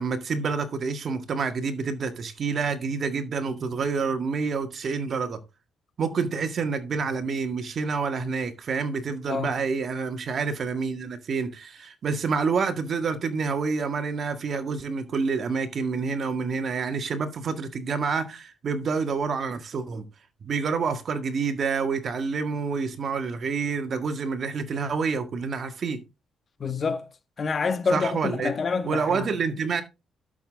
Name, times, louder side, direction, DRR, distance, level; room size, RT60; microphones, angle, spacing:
voice 1, 0.0-5.4 6.0-20.1 20.4-26.0 27.9-28.5 28.8-29.8, right 5 dB, 50° right, 1.8 m, -28 dB
voice 2, 26.6-27.1 27.4-29.3, left 5 dB, 40° left, 1.4 m, -27 dB
12.0 x 6.8 x 3.6 m
cardioid pair, 90°, 0 cm